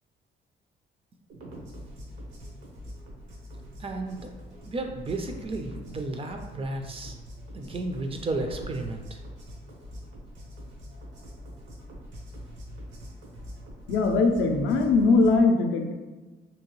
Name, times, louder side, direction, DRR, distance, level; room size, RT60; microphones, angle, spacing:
sound 1, 1.3-15.4, equal, 75° right, 0.8 m, -43 dB
voice 1, 3.8-4.3 4.6-7.2 7.5-9.2, right 2 dB, 30° right, 4 dB, 0.3 m, -33 dB
voice 2, 13.9-15.9, left 3 dB, 75° left, 4 dB, 0.4 m, -21 dB
2.7 x 2.2 x 3.0 m, 1.3 s
cardioid pair, 90°, 20 cm